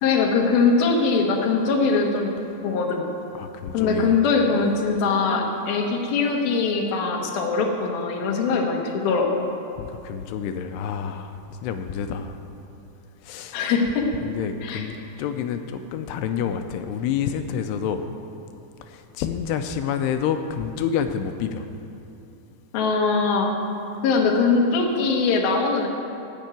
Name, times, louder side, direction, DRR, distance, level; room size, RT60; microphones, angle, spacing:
voice 1, 0.0-2.3 2.6-3.0 3.7-9.3 13.5-14.0 14.6-14.9 22.7-23.5 24.0-25.9, left 4 dB, 70° left, 0 dB, 3.0 m, -22 dB
voice 2, 3.3-4.2 9.8-12.4 13.2-13.6 14.2-18.0 18.8-21.6, left 8 dB, 85° left, 7 dB, 2.7 m, -28 dB
16.0 x 5.3 x 8.9 m, 2.8 s
omnidirectional pair, 4.8 m